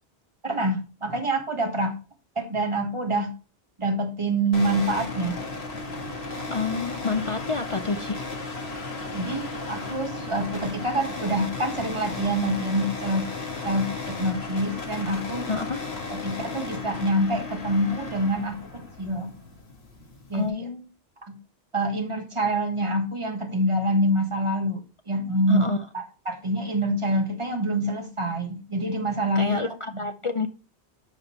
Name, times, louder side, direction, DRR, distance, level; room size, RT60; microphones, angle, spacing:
voice 1, 0.4-2.0 2.3-3.3 3.8-5.4 9.1-13.2 13.6-15.5 16.1-19.3 20.3-20.7 21.3-21.4 21.7-24.8 25.1-30.1, right 1 dB, 25° right, 1.5 m, -26 dB
sound 1, 4.5-20.5, left 3 dB, 65° left, 1.8 m, -35 dB
voice 2, 6.5-8.2 15.5-15.8 20.3-20.8 25.5-25.9 29.3-30.5, left 3 dB, 45° left, 0.4 m, -28 dB
13.0 x 5.1 x 3.0 m
omnidirectional pair, 1.2 m